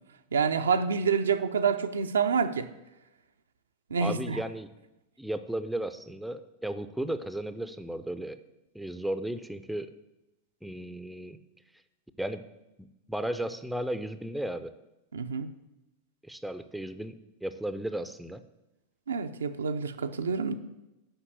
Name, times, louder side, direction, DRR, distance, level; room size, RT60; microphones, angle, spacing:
voice 1, 0.3-2.7 3.9-4.4 15.1-15.5 19.1-20.5, right 6 dB, 70° right, 0.5 m, -27 dB
voice 2, 4.0-4.7 5.2-8.4 8.7-9.9 10.6-11.4 12.2-12.4 12.8-14.7 16.2-17.2 17.4-18.4, right 1 dB, ahead, 0.5 m, -34 dB
8.0 x 5.7 x 7.8 m
figure-of-eight pair, 90°, 0 cm